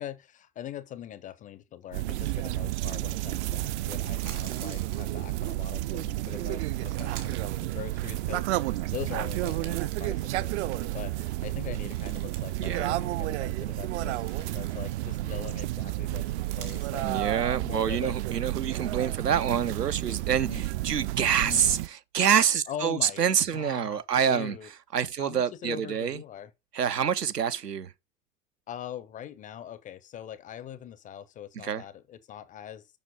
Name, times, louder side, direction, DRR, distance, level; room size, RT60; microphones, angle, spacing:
voice 1, 0.0-17.1 17.6-18.2 18.4-18.6 20.5-20.6 21.4-21.8 22.7-23.2 23.5-24.0 24.3-24.7 25.2-26.5 28.7-32.9, left 10 dB, 20° left, 0.4 m, -42 dB
sound 1, 1.9-21.9, right 16 dB, 50° right, 0.5 m, -31 dB
sound 2, 3.7-5.7 6.4-8.4 8.8-11.0 11.3-12.8 13.0-13.2 13.8-15.5 16.2-17.1, right 9 dB, 65° right, 2.2 m, -49 dB
voice 2, 12.6-12.9 17.0-21.8 22.1-24.5 24.9-26.2 26.7-27.9 31.6-31.8, right 8 dB, 85° right, 0.8 m, -26 dB
6.9 x 5.7 x 5.1 m
figure-of-eight pair, 80°, 47 cm